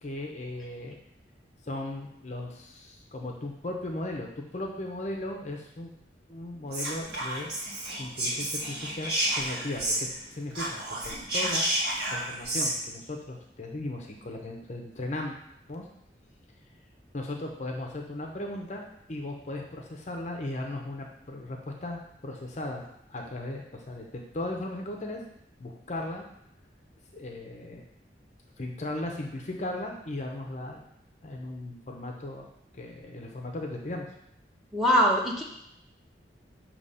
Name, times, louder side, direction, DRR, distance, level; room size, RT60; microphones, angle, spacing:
voice 1, 0.0-1.0 1.6-5.9 6.3-7.5 8.0-11.7 12.1-15.3 15.7-15.9 17.1-22.8 23.1-25.2 25.6-26.3 27.1-27.8 28.6-30.8 31.2-32.5 32.7-34.1, left 1 dB, 40° left, 1 dB, 0.7 m, -37 dB
Whispering, 6.7-10.2 10.5-12.7, right 1 dB, 60° right, 1.6 m, -30 dB
voice 2, 34.7-35.4, equal, ahead, -4 dB, 0.9 m, -22 dB
6.9 x 2.9 x 5.5 m, 0.77 s
head